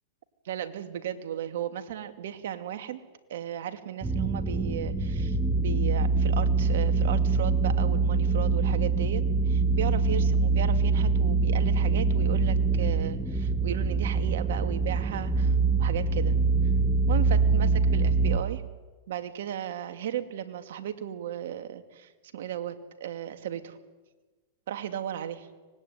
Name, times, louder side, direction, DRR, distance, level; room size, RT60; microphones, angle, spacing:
voice 1, 0.5-3.0 3.3-16.4 17.1-18.6 19.1-23.8 24.7-25.5, right 10 dB, 75° right, 8 dB, 2.4 m, -35 dB
sound 1, 4.0-18.4, right 4 dB, 10° right, 2.4 m, -24 dB
25.0 x 20.5 x 9.6 m, 1.2 s
hypercardioid pair, 115°, 0 cm